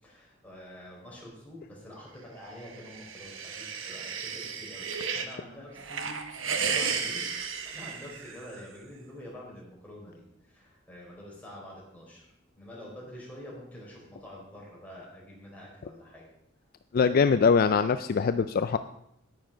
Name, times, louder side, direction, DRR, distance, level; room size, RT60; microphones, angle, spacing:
voice 1, 0.0-7.2 7.6-12.2 12.6-16.2, left 1 dB, 10° left, -5 dB, 4.2 m, -47 dB
sound 1, 2.7-5.4 5.8-8.6, right 6 dB, 80° right, 1.1 m, -34 dB
voice 2, 16.9-18.8, left 5 dB, 50° left, 11 dB, 0.4 m, -23 dB
9.6 x 9.5 x 5.1 m, 0.77 s
head